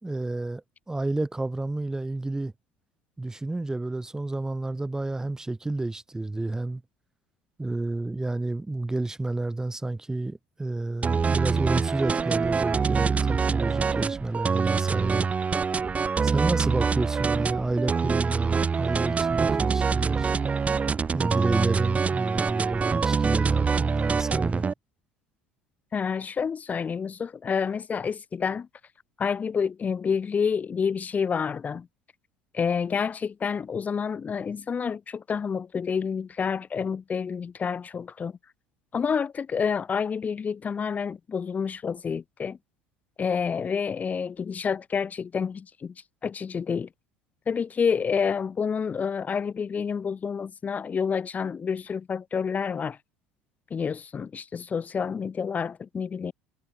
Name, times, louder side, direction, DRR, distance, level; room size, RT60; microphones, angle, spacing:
voice 1, 0.0-2.5 3.2-6.8 7.6-15.3 16.2-20.3 21.1-24.7, right 2 dB, 10° right, 3.5 m, -30 dB
sound 1, 11.0-24.7, right 5 dB, 25° right, 3.8 m, -25 dB
voice 2, 25.9-28.7 29.2-31.9 32.5-38.3 38.9-42.6 43.2-45.9 46.2-46.9 47.5-53.0 53.7-56.3, left 6 dB, 30° left, 4.2 m, -28 dB
hypercardioid pair, 70°, 5 cm